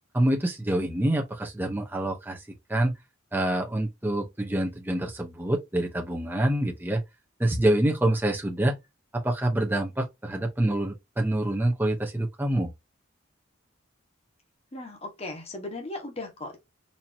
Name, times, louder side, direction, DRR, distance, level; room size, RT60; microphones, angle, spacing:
voice 1, 0.1-2.4 2.7-2.9 3.3-7.0 7.4-8.8 9.1-12.7, right 1 dB, 10° right, 0.8 m, -26 dB
voice 2, 14.7-16.6, left 2 dB, 30° left, 1.3 m, -37 dB
4.2 x 2.8 x 2.7 m
head